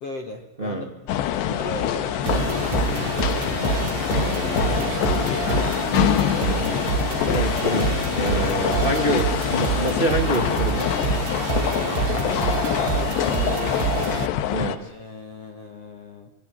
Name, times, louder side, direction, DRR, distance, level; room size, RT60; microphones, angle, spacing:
voice 1, 0.0-2.8 4.4-5.8 12.1-13.5 14.8-16.3, left 3 dB, 55° left, 5 dB, 1.8 m, -37 dB
sound 1, 1.1-14.8, left 11 dB, 80° left, 3.2 m, -25 dB
sound 2, 2.2-14.3, right 10 dB, 75° right, 3.0 m, -27 dB
voice 2, 3.7-4.3 7.2-11.0 14.5-14.9, right 1 dB, 35° right, 5 dB, 0.8 m, -27 dB
26.0 x 23.5 x 7.6 m, 0.81 s
omnidirectional pair, 5.1 m